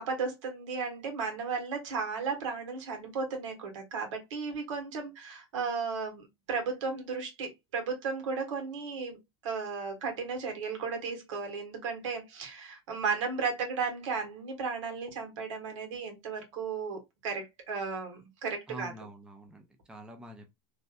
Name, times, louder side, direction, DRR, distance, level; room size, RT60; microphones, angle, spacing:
voice 1, 0.0-9.2 9.4-18.9, right 5 dB, 85° right, 1.5 m, -35 dB
voice 2, 18.7-20.5, right 1 dB, 5° right, 0.4 m, -46 dB
3.3 x 2.6 x 2.3 m
supercardioid pair, 150°, 15 cm